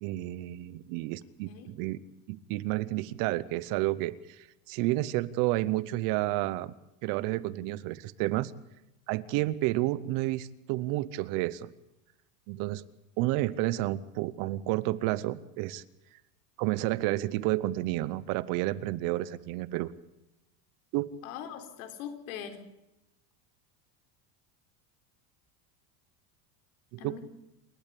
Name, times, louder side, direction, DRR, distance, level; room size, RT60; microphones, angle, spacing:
voice 1, 0.0-2.0 2.3-6.7 7.0-8.5 9.1-11.7 12.5-12.8 13.2-15.8 16.6-19.9 20.9-21.1 26.9-27.2, right 17 dB, 45° right, 18 dB, 0.9 m, -30 dB
voice 2, 21.2-22.6 27.0-27.2, left 9 dB, 70° left, 8 dB, 4.0 m, -41 dB
28.0 x 12.5 x 8.4 m, 0.93 s
supercardioid pair, 165°, 44 cm